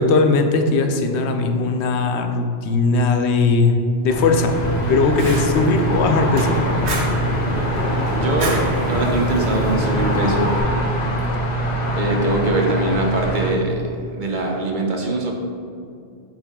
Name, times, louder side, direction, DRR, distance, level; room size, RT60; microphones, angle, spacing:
voice 1, 0.0-4.6 4.9-6.6, left 3 dB, 85° left, 5 dB, 0.9 m, -18 dB
sound 1, 4.1-13.5, equal, 45° left, 0.8 m, -23 dB
Fire, 4.5-10.6, right 1 dB, 80° right, 1.2 m, -27 dB
voice 2, 8.1-10.5 12.0-15.3, right 2 dB, 50° right, 0 dB, 0.9 m, -22 dB
8.3 x 3.5 x 3.6 m, 2.5 s
omnidirectional pair, 1.1 m